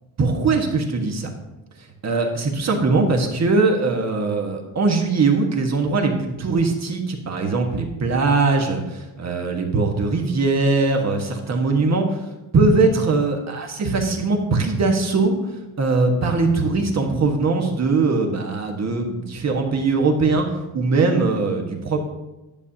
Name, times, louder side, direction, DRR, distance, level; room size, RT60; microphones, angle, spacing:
voice 1, 0.2-1.3 2.0-12.2 12.5-15.3 15.8-22.0, right 3 dB, 35° right, 3 dB, 1.4 m, -21 dB
10.5 x 7.0 x 2.8 m, 1.0 s
cardioid pair, 105°, 46 cm